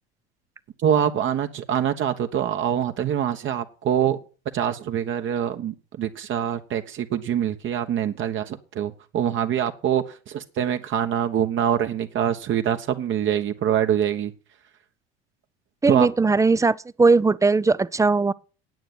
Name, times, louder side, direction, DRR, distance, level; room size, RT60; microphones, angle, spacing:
voice 1, 0.8-4.2 4.5-14.3 15.9-16.1, right 9 dB, 40° right, 1.1 m, -24 dB
voice 2, 15.8-18.3, right 3 dB, 10° right, 0.5 m, -19 dB
9.3 x 9.0 x 9.3 m
figure-of-eight pair, 75°, 31 cm